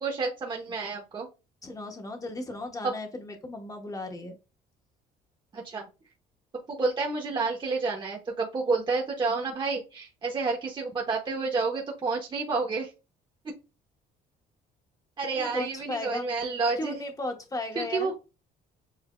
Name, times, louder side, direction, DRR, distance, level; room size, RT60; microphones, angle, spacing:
voice 1, 0.0-1.3 5.5-5.9 6.7-12.9 15.2-16.9 17.8-18.1, right 4 dB, 30° right, -1 dB, 1.0 m, -29 dB
voice 2, 1.6-4.3 8.7-8.8 15.3-16.3 16.8-18.1, left 2 dB, 20° left, 4 dB, 1.1 m, -36 dB
7.3 x 2.7 x 2.2 m, 0.29 s
cardioid pair, 110°, 17 cm